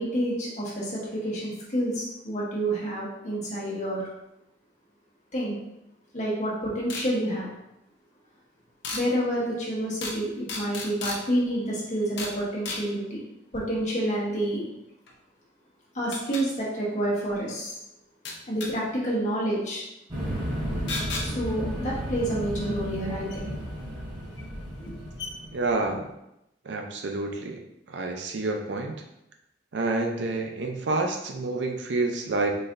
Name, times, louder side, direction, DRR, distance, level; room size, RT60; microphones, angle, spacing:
voice 1, 0.0-4.1 5.3-5.6 6.1-7.5 8.9-13.2 13.5-14.7 15.9-17.7 18.5-19.8 21.2-23.5 24.8-24.9, right 1 dB, 40° left, -5 dB, 1.1 m, -28 dB
sound 1, 6.9-7.1 8.8-9.0 10.0-10.2 10.5-11.2 12.2-12.4 12.7-12.8 15.1-15.2 16.1-16.4 18.3-18.7 20.9-21.3 23.3-23.4 24.4-24.5 24.8-24.9 25.2-25.3, left 3 dB, 65° left, 0.7 m, -33 dB
sound 2, 20.1-25.9, equal, 25° right, 1.2 m, -33 dB
voice 2, 25.5-26.1 26.7-27.6 27.9-28.9 29.7-32.5, right 2 dB, 70° right, 3 dB, 0.5 m, -28 dB
4.1 x 3.1 x 2.5 m, 0.86 s
head